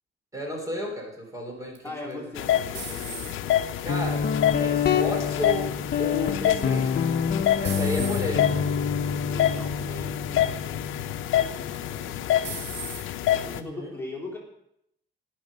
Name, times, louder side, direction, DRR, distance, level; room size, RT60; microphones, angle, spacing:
voice 1, 0.3-2.2 3.8-4.3 4.6-7.0 7.6-8.7 13.5-13.9, equal, 15° right, 1 dB, 3.4 m, -33 dB
sound 1, 1.7-3.7 4.2-4.7 6.7-7.1 7.6-8.3 9.1-9.3 9.7-9.8 11.7-12.1 12.4-13.1, right 5 dB, 65° right, 3.0 m, -38 dB
voice 2, 1.8-3.6 7.7-8.4 9.2-12.7 13.4-14.4, left 2 dB, 10° left, -2 dB, 3.3 m, -41 dB
sound 2, 2.4-13.6, left 11 dB, 80° left, 0.7 m, -28 dB
Guitar, 3.9-13.4, left 7 dB, 50° left, 0.9 m, -28 dB
18.5 x 6.4 x 5.3 m, 0.75 s
cardioid pair, 90°, 20 cm